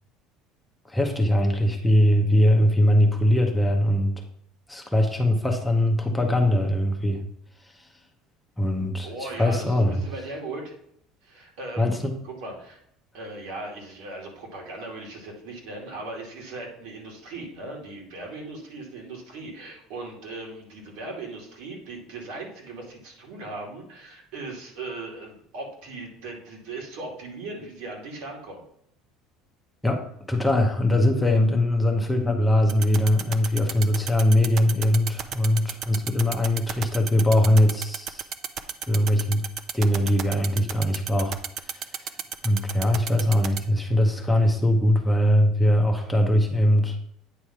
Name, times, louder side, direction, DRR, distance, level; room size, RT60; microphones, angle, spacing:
voice 1, 0.9-4.1 4.7-7.2 8.6-10.0 11.8-12.2 29.8-30.0 30.3-38.2 38.9-39.4 39.7-41.4 42.4-47.0, left 1 dB, 5° left, 2 dB, 0.9 m, -21 dB
voice 2, 9.0-10.7 11.2-12.8 13.1-28.6, right 2 dB, 80° right, 0 dB, 2.7 m, -38 dB
sound 1, 32.7-43.6, right 8 dB, 40° right, 0.5 m, -31 dB
9.0 x 3.3 x 5.7 m, 0.72 s
cardioid pair, 155°, 0 cm